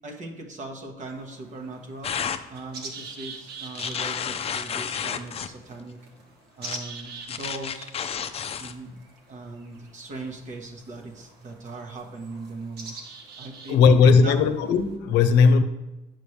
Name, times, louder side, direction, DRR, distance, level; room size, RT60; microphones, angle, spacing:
voice 1, 0.0-6.0 6.6-7.9 8.6-8.9 9.3-13.0 13.4-14.4, right 2 dB, 45° right, 1.1 m, -39 dB
sound 1, 1.0-14.9, right 4 dB, 75° right, 1.4 m, -45 dB
sound 2, 2.0-2.4 3.7-5.5 6.6-6.8 7.3-8.7, left 7 dB, 35° left, 0.5 m, -31 dB
voice 2, 13.7-15.6, left 5 dB, 85° left, 0.7 m, -17 dB
8.3 x 6.1 x 3.2 m
cardioid pair, 110°, 17 cm